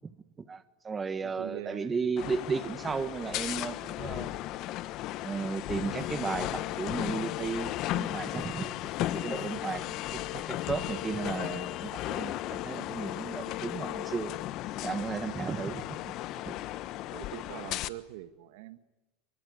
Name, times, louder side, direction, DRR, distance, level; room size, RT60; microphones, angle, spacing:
voice 1, 0.5-4.3 5.2-8.7 9.0-9.8 10.1-14.3 14.8-16.1 16.4-16.5, right 5 dB, 20° right, 12 dB, 1.5 m, -34 dB
voice 2, 1.2-2.1 9.9-10.0 17.1-18.8, right 14 dB, 75° right, 11 dB, 1.7 m, -43 dB
sound 1, 2.2-17.9, left 15 dB, 50° left, 1.2 m, -35 dB
25.0 x 23.5 x 9.6 m, 1.1 s
supercardioid pair, 130°, 0 cm